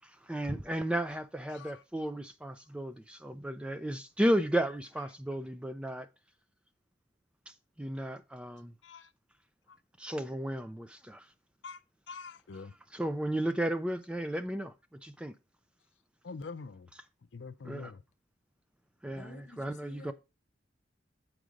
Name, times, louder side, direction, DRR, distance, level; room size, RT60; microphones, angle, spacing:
voice 1, 0.0-6.1 7.5-8.7 10.0-11.3 12.9-14.7 15.0-15.3 17.7-17.9 19.0-20.1, right 1 dB, 5° right, 0.3 m, -34 dB
voice 2, 1.5-1.8 8.8-9.1 9.7-9.8 11.6-11.8 12.1-12.7 16.2-16.9 17.3-18.0, left 4 dB, 70° left, 0.5 m, -45 dB
voice 3, 19.0-20.1, left 2 dB, 40° left, 0.9 m, -51 dB
7.6 x 4.7 x 5.0 m
head